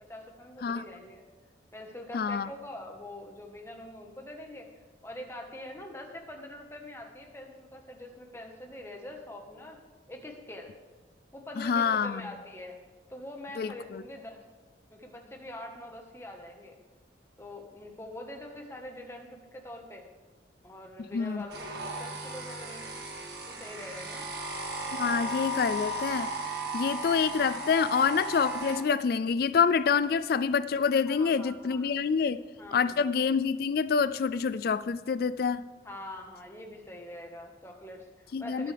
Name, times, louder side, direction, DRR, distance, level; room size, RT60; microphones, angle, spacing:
voice 1, 0.1-1.2 1.7-4.7 5.0-9.8 10.1-10.7 11.3-12.8 13.1-14.4 14.9-16.8 17.4-20.0 20.6-22.9 23.5-24.3 31.1-31.9 32.6-33.1 35.8-38.7, left 1 dB, 15° left, 2 dB, 1.3 m, -44 dB
voice 2, 2.1-2.5 11.6-12.2 13.6-14.0 21.1-21.4 25.0-26.3 26.7-32.4 32.7-35.6 38.3-38.7, left 6 dB, 55° left, 14 dB, 0.3 m, -27 dB
sound 1, 21.5-28.8, right 2 dB, 60° right, 1.7 m, -36 dB
21.0 x 7.6 x 3.4 m, 1.3 s
head